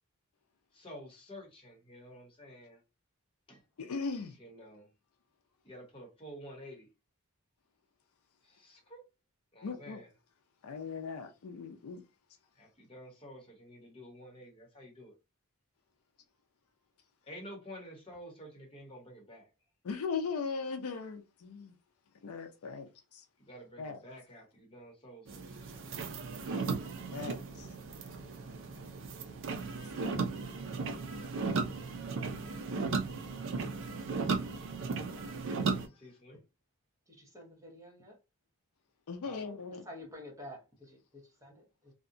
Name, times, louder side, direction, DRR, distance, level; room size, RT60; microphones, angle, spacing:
voice 1, 0.7-2.8 3.5-3.6 4.4-4.9 5.6-6.9 8.4-9.0 9.5-10.1 12.5-15.2 17.2-19.5 23.4-25.9 26.2-26.7 27.2-27.4 35.9-36.4 39.2-39.5, equal, 25° left, 1.0 m, -50 dB
voice 2, 3.8-4.4 9.6-10.0 10.6-12.0 19.8-21.7 22.2-23.2 23.8-24.0 27.1-27.7 39.1-39.8, left 5 dB, 70° left, 0.4 m, -38 dB
sound 1, 25.3-35.9, right 4 dB, 60° right, 0.5 m, -36 dB
voice 3, 37.1-38.2 39.7-41.9, left 1 dB, 15° right, 0.9 m, -50 dB
2.8 x 2.2 x 2.5 m
head